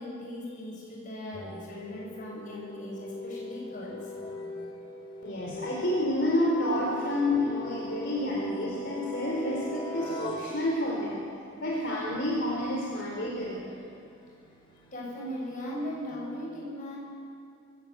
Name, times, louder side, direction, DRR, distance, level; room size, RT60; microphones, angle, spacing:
voice 1, 0.0-4.1 14.9-17.0, left 1 dB, 40° left, -4 dB, 7.0 m, -38 dB
sound 1, 1.3-11.3 13.4-16.1, left 1 dB, 25° left, 2.7 m, -42 dB
voice 2, 5.2-11.2 11.6-13.7, left 1 dB, 55° left, -4 dB, 3.9 m, -29 dB
24.0 x 17.0 x 8.1 m, 2.5 s
head